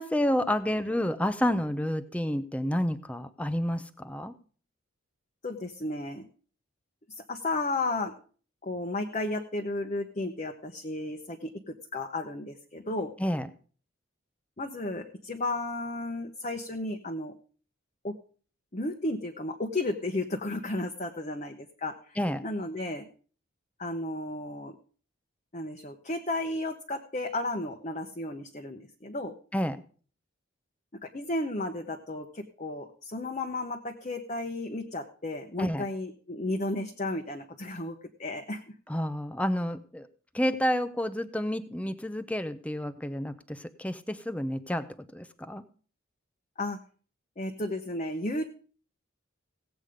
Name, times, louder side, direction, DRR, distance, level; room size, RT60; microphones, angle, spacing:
voice 1, 0.0-4.3 13.2-13.5 22.2-22.4 29.5-29.8 35.6-35.9 38.9-40.1 40.3-44.9 45.1-45.6, equal, 5° left, 11 dB, 0.5 m, -29 dB
voice 2, 5.4-6.3 7.2-8.1 8.6-13.1 14.6-17.3 18.0-18.1 18.7-22.2 22.4-23.1 23.8-24.8 25.5-29.3 31.0-38.6 46.6-46.8 47.4-48.4, left 2 dB, 35° left, 3 dB, 0.9 m, -33 dB
17.0 x 8.1 x 5.0 m, 0.42 s
head